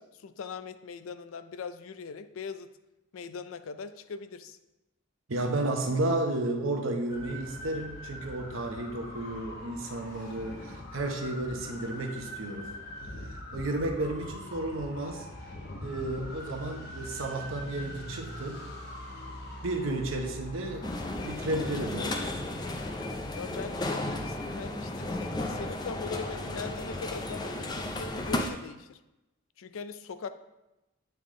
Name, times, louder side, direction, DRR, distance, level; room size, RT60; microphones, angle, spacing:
voice 1, 0.0-2.7 3.1-4.6 23.3-29.0 29.6-30.3, left 5 dB, 85° left, 11 dB, 0.4 m, -41 dB
voice 2, 5.3-12.7 13.1-15.3 15.8-18.6 19.3-20.9 21.2-22.3, right 2 dB, 80° right, 3 dB, 0.9 m, -32 dB
sound 1, 7.1-21.8, left 1 dB, 50° left, 1.0 m, -42 dB
sound 2, 20.8-28.5, left 1 dB, 20° left, 0.4 m, -34 dB
9.0 x 3.5 x 3.7 m, 0.98 s
head